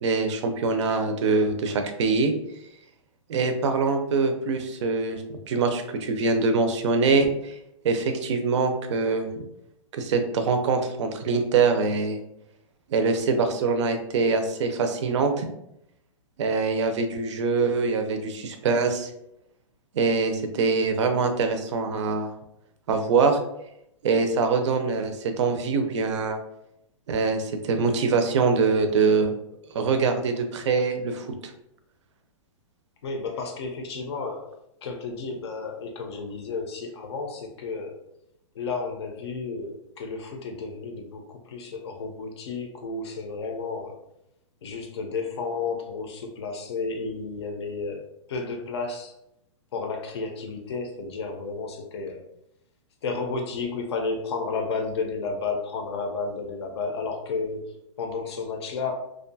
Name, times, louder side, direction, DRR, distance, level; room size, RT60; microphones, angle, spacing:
voice 1, 0.0-2.3 3.3-7.6 7.8-9.3 9.9-12.2 12.9-15.5 16.4-19.1 19.9-22.3 22.9-23.4 24.0-26.4 27.1-29.3 29.7-31.3, right 4 dB, 60° right, 6 dB, 0.5 m, -24 dB
voice 2, 33.0-34.5 34.8-37.9 38.5-44.0 44.6-48.0 48.3-49.1 49.7-52.3 53.0-58.9, left 4 dB, 55° left, 4 dB, 0.5 m, -32 dB
2.5 x 2.3 x 2.6 m, 0.81 s
hypercardioid pair, 160°, 17 cm